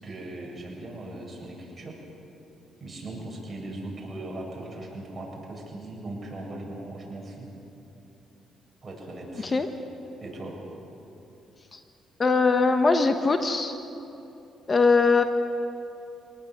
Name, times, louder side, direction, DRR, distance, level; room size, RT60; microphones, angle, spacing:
voice 1, 0.0-2.0 2.8-7.5 8.8-9.6 10.2-10.6, right 1 dB, 25° right, -2 dB, 7.9 m, -39 dB
voice 2, 12.2-13.7 14.7-15.2, left 4 dB, 35° left, 7 dB, 1.3 m, -21 dB
25.5 x 19.0 x 8.1 m, 2.8 s
cardioid pair, 90°, 0 cm